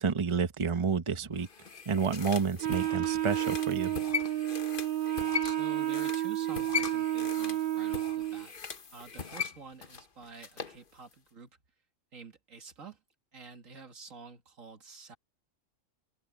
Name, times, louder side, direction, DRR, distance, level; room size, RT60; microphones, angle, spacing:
voice 1, 0.0-1.5 1.9-4.0, right 5 dB, 25° right, 0.9 m, -30 dB
sound 1, 1.4-10.8 11.1-11.2, left 6 dB, 45° left, 1.3 m, -39 dB
Wind instrument woodwind instrument, 2.6-8.5, right 13 dB, 55° right, 0.6 m, -31 dB
voice 2, 5.4-8.5 8.9-11.5 12.1-13.0 13.3-15.2, right 5 dB, 85° right, 2.4 m, -49 dB
open air
omnidirectional pair, 1.3 m